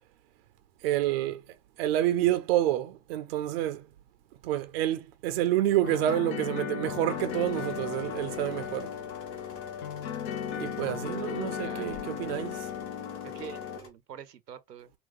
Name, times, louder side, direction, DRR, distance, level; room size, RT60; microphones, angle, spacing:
voice 1, 0.8-1.4 1.8-3.9 4.4-8.9 10.5-12.7, right 13 dB, 40° right, 0.7 m, -28 dB
sound 1, 5.8-13.8, left 9 dB, 45° left, 0.7 m, -36 dB
sound 2, 7.1-13.9, left 4 dB, 25° left, 1.4 m, -50 dB
voice 2, 11.6-12.4 13.2-14.9, right 9 dB, 75° right, 0.8 m, -46 dB
4.0 x 2.3 x 3.6 m
figure-of-eight pair, 105°, 48 cm